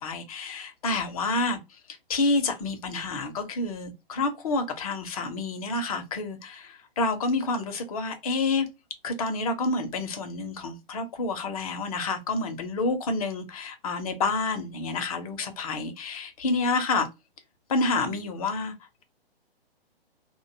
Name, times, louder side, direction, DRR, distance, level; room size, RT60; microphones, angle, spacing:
voice 1, 0.0-8.7 9.0-17.1 17.7-18.7, left 3 dB, 35° left, 0.6 m, -29 dB
2.5 x 2.2 x 2.5 m
figure-of-eight pair, 125°, 30 cm